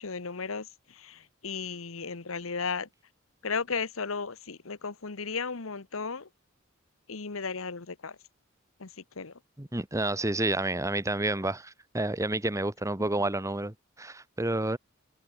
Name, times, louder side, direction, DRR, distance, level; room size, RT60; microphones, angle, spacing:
voice 1, 0.0-2.9 3.4-6.3 7.1-8.2 8.8-9.4, left 5 dB, 80° left, 1.2 m, -35 dB
voice 2, 9.6-14.8, right 2 dB, 15° right, 1.3 m, -30 dB
head